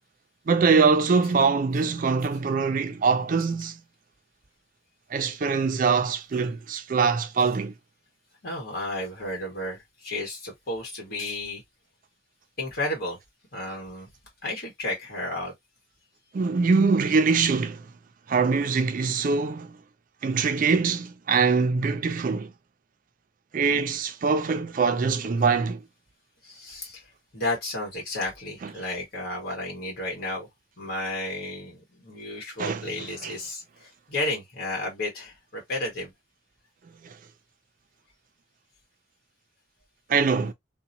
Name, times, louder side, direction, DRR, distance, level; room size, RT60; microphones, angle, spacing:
voice 1, 0.5-3.8 5.1-7.7 16.3-17.9 18.3-19.8 20.2-22.5 23.5-25.8 28.6-28.7 32.6-32.9 33.2-33.3 37.0-37.2 40.1-40.5, right 4 dB, 45° right, 0.3 m, -23 dB
voice 2, 8.4-11.6 12.6-13.2 13.5-14.1 14.4-15.5 26.4-27.0 27.3-30.5 30.8-36.1, left 1 dB, 50° left, 1.3 m, -32 dB
2.8 x 2.1 x 2.5 m
head